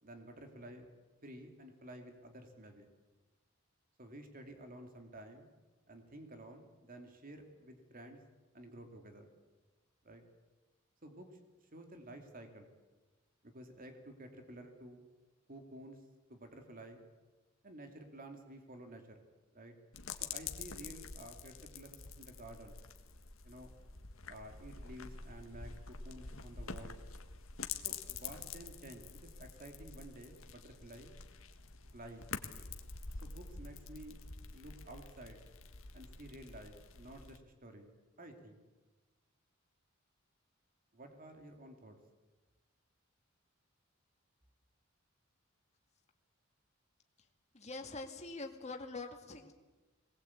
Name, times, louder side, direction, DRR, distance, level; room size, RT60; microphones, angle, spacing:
voice 1, 0.0-0.9 1.2-2.9 4.0-5.5 5.9-8.2 8.5-9.3 10.0-10.2 11.0-11.4 11.7-12.7 13.4-15.0 15.5-16.0 16.3-17.0 17.6-19.2 19.5-19.7 20.2-22.8 23.4-23.7 24.3-25.7 26.0-27.0 27.8-31.2 31.9-32.3 33.2-34.2 34.5-35.4 35.9-37.9 38.2-38.6 40.9-41.9, right 1 dB, 45° right, 5 dB, 2.8 m, -52 dB
sound 1, 19.9-37.4, left 5 dB, 75° left, 1.6 m, -47 dB
voice 2, 47.5-49.5, left 3 dB, 35° left, 3 dB, 2.3 m, -44 dB
22.0 x 19.5 x 8.6 m, 1.2 s
head